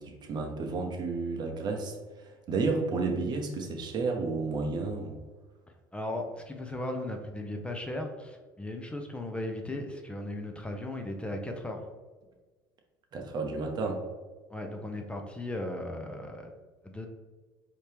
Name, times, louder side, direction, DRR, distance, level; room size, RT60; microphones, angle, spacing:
voice 1, 0.0-5.2 13.1-14.0, right 3 dB, 45° right, 3 dB, 0.8 m, -32 dB
voice 2, 5.9-11.9 14.5-16.5 16.8-17.1, left 1 dB, 10° left, 3 dB, 0.6 m, -36 dB
4.4 x 2.8 x 3.4 m, 1.3 s
hypercardioid pair, 75°, 10 cm